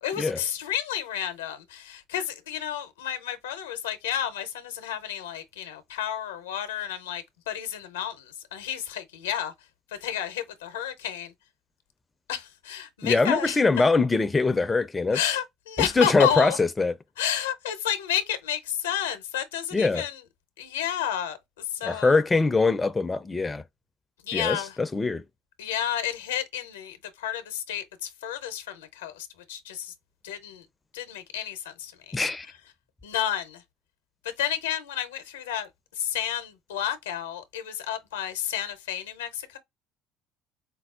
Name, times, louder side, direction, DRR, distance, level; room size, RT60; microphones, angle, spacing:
voice 1, 0.0-9.5 10.0-11.3 12.3-13.6 15.1-16.6 17.2-20.2 20.6-22.2 24.2-24.8 25.6-29.9 30.2-30.7 30.9-32.2 33.0-33.6 34.2-35.7 35.9-39.6, left 10 dB, 80° left, 0.6 m, -31 dB
voice 2, 13.0-15.2 15.8-16.9 19.7-20.1 21.8-23.6 24.3-25.2 32.1-32.5, left 3 dB, 20° left, 0.4 m, -23 dB
4.4 x 2.0 x 2.3 m
hypercardioid pair, 60°, 0 cm